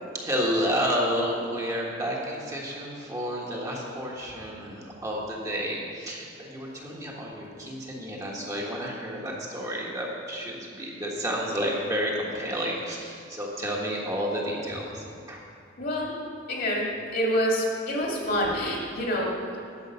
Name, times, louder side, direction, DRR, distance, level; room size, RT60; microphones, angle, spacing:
voice 1, 0.2-15.4, equal, 20° right, -3 dB, 1.5 m, -30 dB
voice 2, 15.8-16.2 16.5-19.3, equal, 55° left, -2 dB, 2.3 m, -27 dB
11.0 x 7.4 x 5.7 m, 2.6 s
head